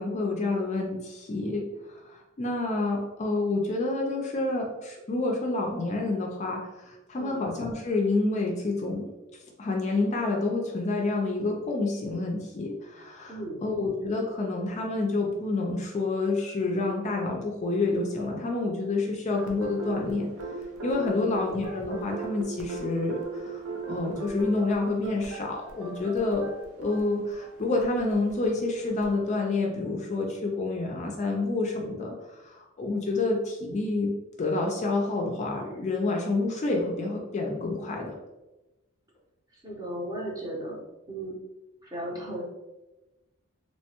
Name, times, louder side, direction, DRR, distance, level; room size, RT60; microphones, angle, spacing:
voice 1, 0.0-9.1 9.6-20.3 20.8-26.5 26.8-34.1 34.4-38.1, left 3 dB, 35° left, 1 dB, 0.3 m, -28 dB
voice 2, 13.3-13.6 21.1-21.5 39.5-41.4 41.8-42.4, right 1 dB, 20° right, -3 dB, 0.7 m, -36 dB
sound 1, 19.3-29.1, right 3 dB, 90° right, 0.5 m, -39 dB
3.0 x 2.1 x 2.8 m, 1.0 s
head